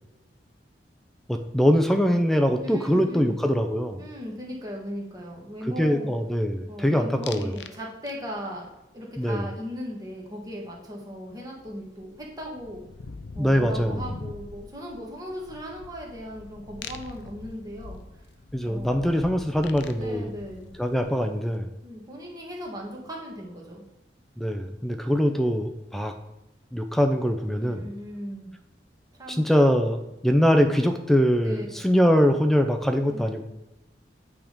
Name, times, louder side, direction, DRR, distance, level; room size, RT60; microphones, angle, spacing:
voice 1, 1.3-4.0 5.8-7.5 9.2-9.4 13.4-14.0 18.5-20.3 20.8-21.7 24.4-26.1 26.7-27.8 29.3-30.0 30.2-33.4, equal, ahead, 6 dB, 0.5 m, -23 dB
voice 2, 2.6-3.3 4.0-6.1 6.7-8.7 8.9-12.8 13.3-18.0 18.6-19.1 20.0-20.7 21.8-23.8 27.5-28.5 29.2-29.4 31.4-31.9 33.1-33.4, equal, 20° right, -2 dB, 1.7 m, -38 dB
sound 1, 7.2-7.8 8.1-8.5 11.0-11.1 11.3-21.4, left 4 dB, 75° left, 0.5 m, -43 dB
8.7 x 3.6 x 5.1 m, 0.98 s
head